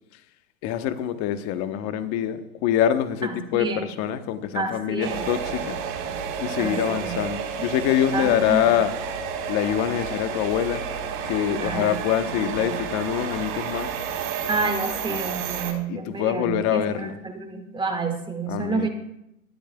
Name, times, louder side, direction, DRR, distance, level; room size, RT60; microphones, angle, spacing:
voice 1, 0.6-5.8 6.4-8.9 9.5-10.8 11.2-13.9 15.1-15.3 15.9-17.2 18.5-18.9, left 10 dB, 35° left, 1.1 m, -25 dB
voice 2, 3.2-3.9 4.5-5.2 6.6-7.2 8.1-8.6 11.6-11.9 12.3-12.7 14.5-18.9, right 4 dB, 10° right, 1.8 m, -29 dB
sound 1, 5.0-15.7, right 7 dB, 50° right, 3.8 m, -31 dB
20.5 x 12.0 x 2.3 m
hypercardioid pair, 120°, 44 cm